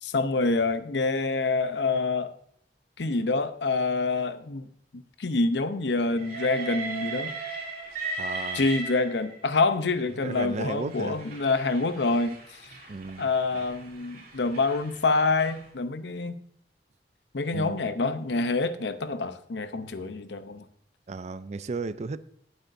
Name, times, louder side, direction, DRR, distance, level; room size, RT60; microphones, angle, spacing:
voice 1, 0.0-2.3 3.0-4.7 4.9-7.4 8.5-12.4 13.2-16.4 17.3-20.6, left 3 dB, 75° left, 0.7 m, -26 dB
Train, 6.1-9.5 10.4-15.6, right 3 dB, 55° right, 2.7 m, -38 dB
voice 2, 8.2-8.6 10.2-11.2 12.9-13.6 17.5-17.8 21.1-22.2, right 3 dB, 40° right, 0.4 m, -34 dB
18.5 x 8.0 x 2.7 m
head